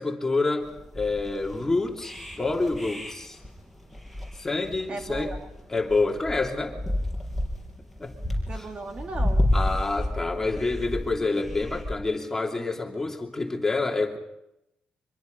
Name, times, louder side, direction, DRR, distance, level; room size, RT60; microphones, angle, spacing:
voice 1, 0.0-3.4 4.4-5.4 5.7-6.8 8.0-8.1 8.5-8.7 9.5-14.2, left 3 dB, 15° left, 1 dB, 2.8 m, -27 dB
sound 1, 0.6-11.9, left 1 dB, 5° right, 5.2 m, -30 dB
voice 2, 4.9-5.5 8.5-9.5, right 3 dB, 40° right, 4 dB, 1.9 m, -36 dB
25.5 x 22.5 x 5.3 m, 0.85 s
wide cardioid pair, 155°, 3 cm